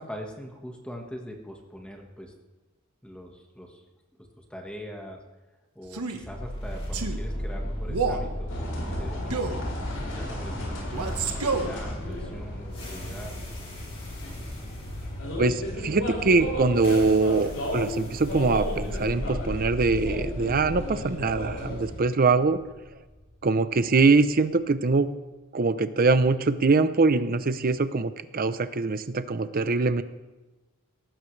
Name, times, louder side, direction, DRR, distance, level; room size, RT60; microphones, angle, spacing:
voice 1, 0.0-2.3 3.0-3.8 4.4-5.2 5.7-9.4 10.0-13.4, equal, 5° left, 1 dB, 1.5 m, -42 dB
Male speech man speaking, 5.9-6.2 6.9-7.2 7.9-8.3 9.3-9.6 10.9-11.7, right 4 dB, 85° right, 1.4 m, -28 dB
sound 1, 6.2-24.3, equal, 25° left, 3.2 m, -37 dB
sound 2, 8.5-22.0, left 1 dB, 85° left, 5.7 m, -34 dB
voice 2, 15.4-22.6 23.4-25.1 25.5-30.0, right 3 dB, 40° right, 12 dB, 0.6 m, -23 dB
18.5 x 14.0 x 3.3 m, 1.2 s
head